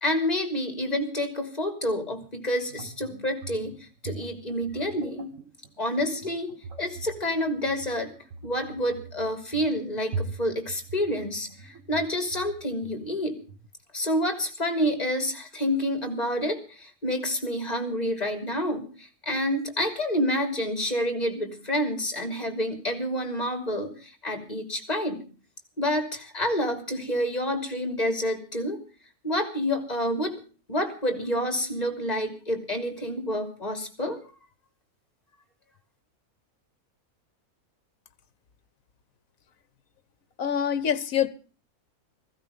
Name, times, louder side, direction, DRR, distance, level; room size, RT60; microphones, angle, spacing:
voice 1, 0.0-3.8 4.0-5.3 5.8-8.1 8.4-13.4 13.9-25.2 25.8-28.8 29.2-30.4 30.7-34.2, equal, 25° left, 3.3 m, -28 dB
sound 1, 2.7-13.7, right 4 dB, 60° right, 1.9 m, -41 dB
voice 2, 40.4-41.3, left 8 dB, 65° left, 1.4 m, -25 dB
16.0 x 15.5 x 5.1 m
omnidirectional pair, 1.6 m